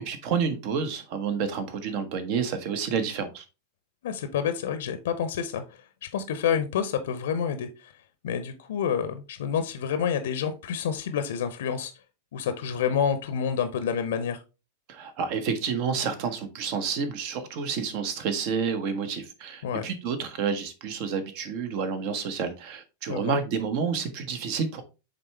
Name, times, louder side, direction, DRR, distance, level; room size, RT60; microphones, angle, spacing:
voice 1, 0.0-3.4 14.9-24.8, right 6 dB, 45° right, 1.1 m, -29 dB
voice 2, 4.0-5.6 6.1-7.9 8.2-11.9 12.3-14.4 19.6-19.9 23.1-23.3, left 7 dB, 60° left, 0.7 m, -28 dB
8.2 x 3.6 x 3.3 m
figure-of-eight pair, 90°, 0 cm